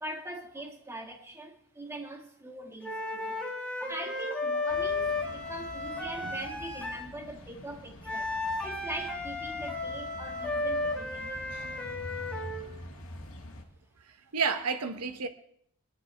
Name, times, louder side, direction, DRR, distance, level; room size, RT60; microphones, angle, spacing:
voice 1, 0.0-3.4 3.8-8.4 8.6-11.4, right 1 dB, 10° right, 1.8 m, -42 dB
sound 1, 2.8-7.1 8.0-12.7, left 2 dB, 5° left, 1.9 m, -34 dB
sound 2, 4.7-13.6, left 1 dB, 65° left, 2.0 m, -46 dB
voice 2, 14.3-15.3, right 5 dB, 85° right, 1.0 m, -31 dB
22.0 x 11.0 x 3.4 m
head